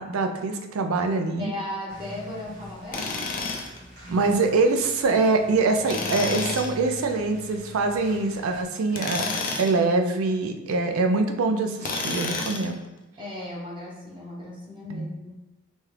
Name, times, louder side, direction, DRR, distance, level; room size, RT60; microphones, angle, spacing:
voice 1, 0.0-1.5 4.1-9.3 9.6-12.8 14.9-15.1, right 3 dB, 70° right, 6 dB, 0.4 m, -24 dB
voice 2, 1.4-3.1 4.2-4.3 13.2-15.5, left 1 dB, 25° right, -5 dB, 1.0 m, -36 dB
sound 1, 1.9-8.6, equal, 45° right, 1.3 m, -43 dB
Tools, 2.9-3.8 5.9-6.7 8.9-9.8 11.8-12.7, left 3 dB, 40° left, 0.5 m, -30 dB
4.3 x 2.4 x 3.2 m, 1.0 s
head